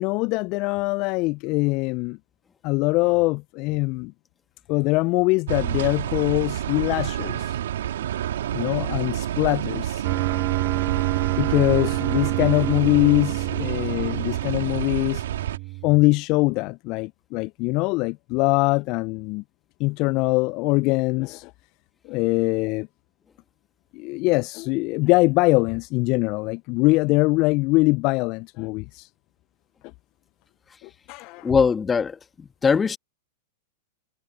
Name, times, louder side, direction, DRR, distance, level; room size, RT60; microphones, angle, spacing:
voice 1, 0.0-2.2 2.6-4.1 4.7-7.6 8.5-10.0 11.4-15.2 15.8-19.4 19.8-21.5 22.0-22.9 23.9-29.1 30.8-31.5, left 24 dB, 45° left, 0.3 m, -23 dB
sound 1, 5.5-15.6, right 11 dB, 70° right, 2.2 m, -28 dB
sound 2, 10.0-16.0, right 24 dB, 50° right, 1.9 m, -28 dB
voice 2, 31.4-33.0, left 5 dB, 20° left, 1.5 m, -21 dB
hypercardioid pair, 105°, 0 cm